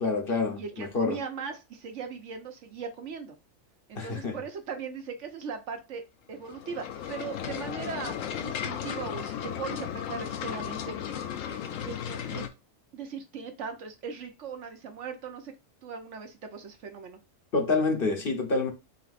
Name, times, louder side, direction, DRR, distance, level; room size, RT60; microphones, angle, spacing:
voice 1, 0.0-1.2 3.9-4.4 17.5-18.7, left 3 dB, 50° left, 1.0 m, -27 dB
voice 2, 0.6-3.4 3.9-6.0 6.3-10.9 11.5-11.6 11.8-12.4 12.9-15.5 15.8-17.2, right 6 dB, 65° right, 1.1 m, -39 dB
sound 1, 6.4-12.5, left 9 dB, 75° left, 1.0 m, -35 dB
4.0 x 4.0 x 2.5 m
omnidirectional pair, 1.4 m